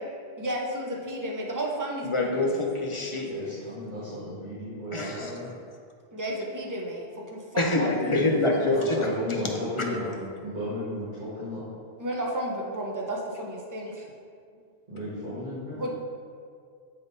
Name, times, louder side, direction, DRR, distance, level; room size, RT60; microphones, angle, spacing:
voice 1, 0.4-2.5 6.1-8.3 8.9-9.0 12.0-14.0 15.8-15.9, right 1 dB, 20° right, -2 dB, 0.7 m, -33 dB
voice 2, 2.0-3.3 4.9-5.3 7.6-9.1 9.8-9.9, left 2 dB, 35° left, 1 dB, 0.6 m, -25 dB
voice 3, 3.2-5.5 8.7-11.6 14.9-15.8, left 1 dB, 40° right, -12 dB, 1.9 m, -34 dB
8.7 x 3.6 x 4.0 m, 2.3 s
omnidirectional pair, 1.1 m